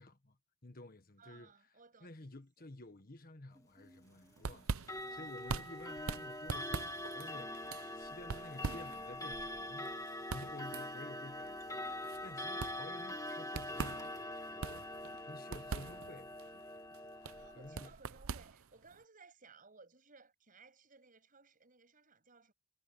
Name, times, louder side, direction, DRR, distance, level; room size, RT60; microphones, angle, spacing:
voice 1, 0.0-1.5 2.0-10.0 10.3-16.6 17.1-17.3 17.5-17.9, left 2 dB, 40° left, 1.5 m, -53 dB
voice 2, 1.2-2.3 2.6-2.7 5.0-5.8 12.4-13.0 17.1-22.5, right 4 dB, 40° right, 7.2 m, -61 dB
Sneeze, 3.5-13.5, equal, 15° right, 6.7 m, -70 dB
sound 1, 4.1-19.0, right 4 dB, 70° right, 0.7 m, -44 dB
Clock, 4.8-17.9, left 1 dB, 15° left, 2.3 m, -44 dB
head